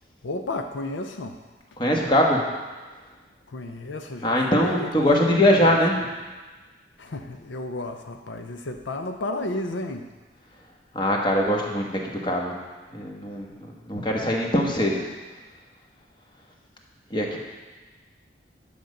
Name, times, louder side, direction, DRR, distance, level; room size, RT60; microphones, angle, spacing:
voice 1, 0.2-1.4 3.5-5.8 7.0-10.1, left 2 dB, 80° left, 5 dB, 0.6 m, -33 dB
voice 2, 1.8-2.4 4.2-5.9 10.9-12.6 12.9-15.0 17.1-17.4, left 1 dB, 25° left, -1 dB, 1.3 m, -22 dB
10.5 x 5.3 x 6.5 m, 1.3 s
head